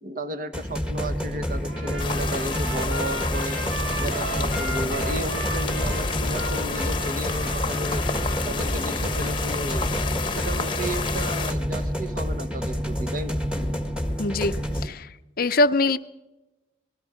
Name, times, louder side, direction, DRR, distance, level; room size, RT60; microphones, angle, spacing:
voice 1, 0.0-8.1 8.4-9.9 10.3-13.9 14.6-14.9, right 1 dB, 45° right, 9 dB, 1.2 m, -34 dB
sound 1, 0.5-14.8, equal, 5° right, 1.4 m, -29 dB
Trumpet, 1.7-8.8, right 2 dB, 75° right, 3.2 m, -36 dB
sound 2, 2.0-11.5, left 4 dB, 25° left, 1.0 m, -30 dB
voice 2, 14.2-15.1 15.4-16.0, left 2 dB, 45° left, 12 dB, 0.6 m, -23 dB
25.5 x 20.0 x 5.0 m, 1.0 s
head